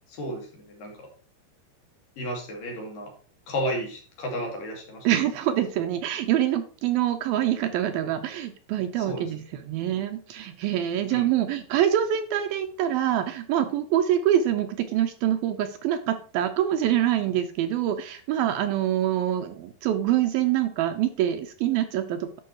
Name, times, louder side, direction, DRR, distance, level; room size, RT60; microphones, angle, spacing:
voice 1, 0.1-1.1 2.2-3.1 3.5-5.1 9.0-9.3 11.1-11.3, equal, 60° left, 0 dB, 4.0 m, -33 dB
voice 2, 5.0-9.4 9.7-22.4, right 11 dB, 75° right, 8 dB, 2.4 m, -25 dB
11.5 x 5.8 x 4.7 m, 0.39 s
omnidirectional pair, 4.6 m